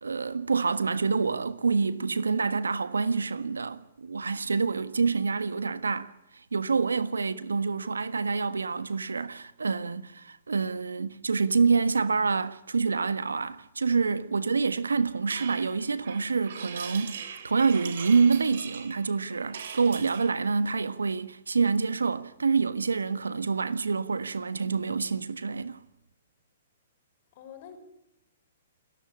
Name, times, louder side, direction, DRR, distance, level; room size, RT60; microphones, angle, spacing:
voice 1, 0.0-6.1 6.5-25.8, right 4 dB, 80° right, 1.4 m, -27 dB
voice 2, 7.0-7.4 19.7-20.1 27.3-27.8, left 8 dB, 45° left, 5.9 m, -48 dB
sound 1, 15.3-20.4, right 7 dB, 65° right, 3.2 m, -41 dB
29.0 x 15.0 x 8.6 m
figure-of-eight pair, 120°, 0 cm